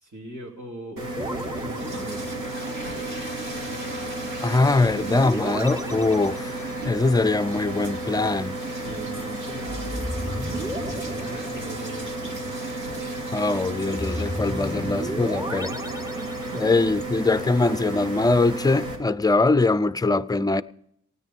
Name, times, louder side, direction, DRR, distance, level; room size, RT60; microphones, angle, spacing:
voice 1, 0.0-2.4 8.7-12.5 15.2-15.8 16.1-16.9, right 2 dB, 70° right, 2.9 m, -40 dB
sound 1, 1.0-18.9, right 2 dB, 90° right, 3.0 m, -33 dB
sound 2, 1.2-2.7 4.9-7.0 9.7-12.2 14.0-17.0, equal, 10° right, 0.9 m, -34 dB
sound 3, 1.2-17.2, right 1 dB, 40° right, 2.6 m, -41 dB
voice 2, 4.4-8.6 13.3-15.7 16.6-20.6, left 3 dB, 15° left, 0.4 m, -22 dB
16.5 x 9.7 x 5.4 m
wide cardioid pair, 70°, 31 cm